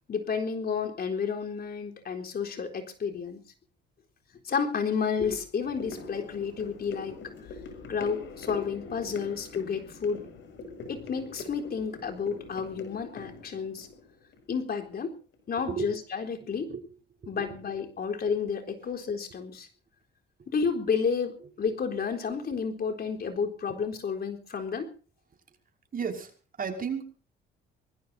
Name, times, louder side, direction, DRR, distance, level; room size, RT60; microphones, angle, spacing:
voice 1, 0.1-3.4 4.4-7.3 7.9-10.3 10.9-13.9 14.5-15.1 15.5-16.7 17.3-19.7 20.5-24.9, left 6 dB, 50° left, 4 dB, 4.0 m, -31 dB
sound 1, 5.6-15.0 15.3-15.4, left 4 dB, 70° left, 6.3 m, -43 dB
voice 2, 17.2-17.6 22.3-22.4 25.9-27.1, right 6 dB, 45° right, 5 dB, 5.6 m, -34 dB
25.0 x 20.5 x 2.8 m, 0.37 s
cardioid pair, 90°, 20 cm